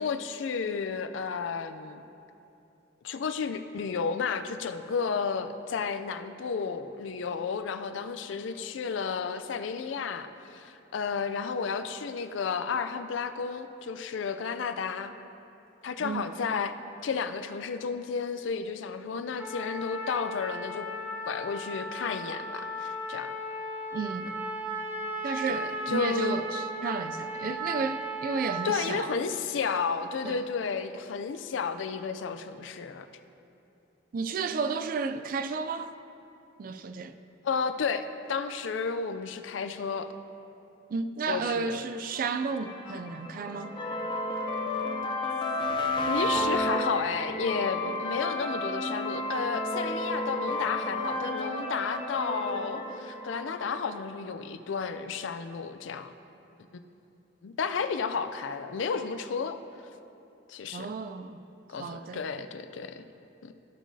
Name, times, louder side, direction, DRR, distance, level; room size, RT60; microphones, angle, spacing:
voice 1, 0.0-2.0 3.0-15.1 15.8-16.7 17.0-20.9 21.2-23.3 25.5-26.4 28.6-33.1 37.4-40.1 41.3-41.8 46.1-56.1 57.4-59.6 60.5-60.9 61.7-63.1 63.4-63.5, left 5 dB, 80° left, 10 dB, 0.4 m, -32 dB
voice 2, 16.0-16.4 23.9-24.3 25.2-29.1 30.2-30.4 34.1-35.9 36.6-37.2 40.9-43.8 60.7-61.4 61.8-62.2, right 4 dB, 45° right, 10 dB, 0.3 m, -32 dB
Trumpet, 19.4-28.9, right 1 dB, 10° right, 0.7 m, -36 dB
sound 1, 42.2-54.0, left 1 dB, 25° left, 0.6 m, -32 dB
14.0 x 6.0 x 2.7 m, 2.8 s
head